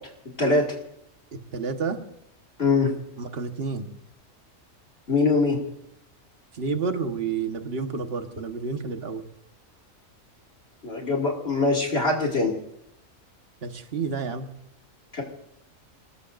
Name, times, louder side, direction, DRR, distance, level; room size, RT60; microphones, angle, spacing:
voice 1, 1.3-2.0 3.2-3.9 6.5-9.2 13.6-14.5, right 5 dB, 50° right, 6 dB, 1.6 m, -30 dB
voice 2, 2.6-2.9 5.1-5.6 10.8-12.5 15.1-15.2, left 3 dB, 50° left, -1 dB, 2.7 m, -22 dB
27.5 x 19.0 x 2.6 m, 0.75 s
omnidirectional pair, 1.4 m